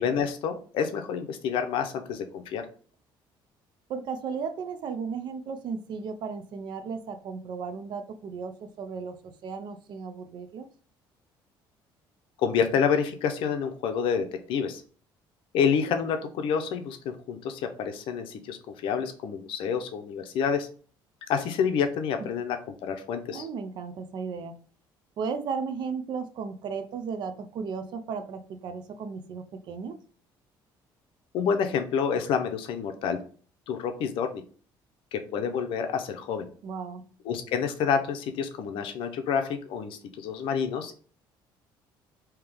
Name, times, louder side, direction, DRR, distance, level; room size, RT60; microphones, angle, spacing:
voice 1, 0.0-2.6 12.4-14.8 15.5-20.7 21.3-22.6 22.8-23.5 31.3-33.2 33.7-34.4 35.1-36.5 37.2-41.0, left 7 dB, 70° left, 6 dB, 0.7 m, -28 dB
voice 2, 3.9-10.7 23.3-24.5 25.2-30.0 36.6-37.0, right 5 dB, 55° right, 9 dB, 0.6 m, -35 dB
3.5 x 2.8 x 3.4 m, 0.43 s
cardioid pair, 135°, 9 cm